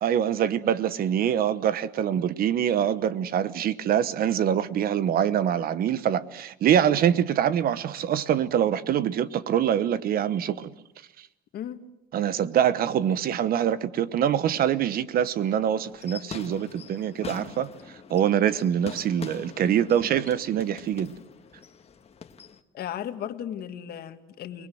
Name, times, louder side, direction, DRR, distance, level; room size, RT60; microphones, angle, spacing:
voice 1, 0.0-10.7 12.1-17.7 18.1-21.1, right 9 dB, 60° right, 1.1 m, -24 dB
sound 1, 15.9-22.6, left 6 dB, 35° left, 1.6 m, -43 dB
voice 2, 22.7-24.7, left 10 dB, 65° left, 1.8 m, -35 dB
29.5 x 20.0 x 7.8 m
cardioid pair, 110°, 17 cm